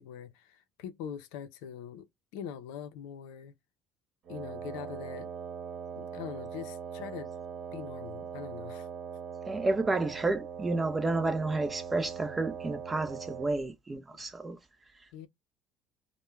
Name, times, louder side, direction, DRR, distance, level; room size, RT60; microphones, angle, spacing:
voice 1, 0.0-2.1 2.3-3.5 4.3-5.3 6.0-7.3 7.7-8.9 15.1-15.3, left 8 dB, 85° left, 0.5 m, -43 dB
Wind instrument woodwind instrument, 4.2-13.6, right 7 dB, 50° right, 1.0 m, -41 dB
voice 2, 9.5-14.6, right 2 dB, 20° right, 0.5 m, -31 dB
2.2 x 2.1 x 3.0 m
supercardioid pair, 105°, 0 cm